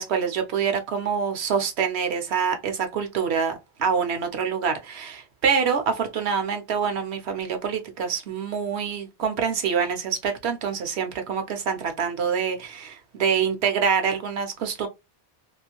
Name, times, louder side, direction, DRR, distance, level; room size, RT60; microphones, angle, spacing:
voice 1, 0.0-14.9, right 6 dB, 80° right, 1.0 m, -26 dB
2.6 x 2.5 x 2.8 m
omnidirectional pair, 1.1 m